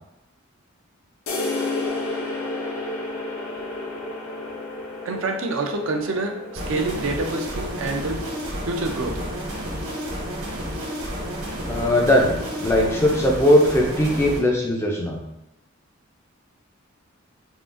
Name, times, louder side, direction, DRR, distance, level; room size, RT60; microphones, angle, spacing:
sound 1, 1.3-8.8, left 2 dB, 90° left, 0.7 m, -32 dB
voice 1, 5.0-8.2 8.7-9.2, right 2 dB, 65° right, 4 dB, 0.4 m, -27 dB
sound 2, 6.6-14.4, equal, 85° right, 1.1 m, -31 dB
voice 2, 11.7-15.2, left 1 dB, 10° left, -1 dB, 0.3 m, -19 dB
3.7 x 2.3 x 2.4 m, 0.88 s
head